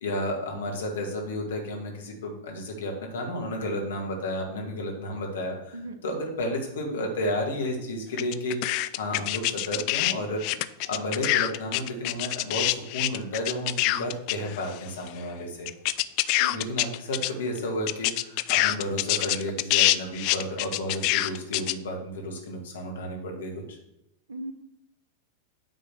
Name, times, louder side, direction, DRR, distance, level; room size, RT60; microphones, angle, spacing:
voice 1, 0.0-5.8 6.0-8.6 9.0-15.7 16.5-23.8, left 1 dB, 65° left, 0 dB, 1.9 m, -32 dB
voice 2, 5.7-6.0 16.4-16.7 24.3-24.5, right 1 dB, 65° right, 10 dB, 0.8 m, -37 dB
sound 1, 8.2-10.1 10.4-14.8 15.1-15.2 15.7-17.3 17.6-17.7 17.9-21.7, left 17 dB, 45° left, 0.3 m, -25 dB
9.3 x 3.7 x 6.2 m, 0.87 s
figure-of-eight pair, 90°, 0 cm